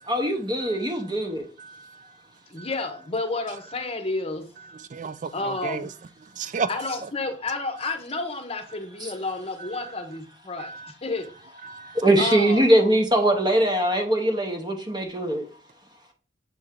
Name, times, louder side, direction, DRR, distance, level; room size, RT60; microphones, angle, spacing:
voice 1, 0.0-1.4 9.0-9.1 12.0-15.4, right 1 dB, 25° right, 0.8 m, -22 dB
voice 2, 1.6-2.0 2.6-2.7 4.9-5.9 6.4-6.7 10.6-10.9 11.6-12.0, right 5 dB, 40° right, 0.3 m, -33 dB
voice 3, 2.5-4.4 5.3-5.9 6.7-11.3 12.2-12.6, left 3 dB, 30° left, 0.8 m, -30 dB
7.5 x 3.4 x 3.6 m
head